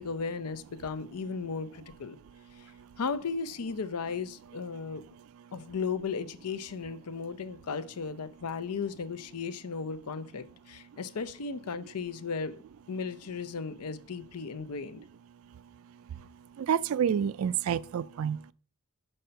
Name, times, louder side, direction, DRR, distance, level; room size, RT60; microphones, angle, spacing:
voice 1, 0.0-2.2 2.6-2.7 3.0-5.0 5.5-12.6 12.9-15.0, left 5 dB, 90° left, 0.6 m, -35 dB
voice 2, 16.6-18.5, right 8 dB, 70° right, 0.3 m, -28 dB
5.4 x 5.4 x 5.6 m
head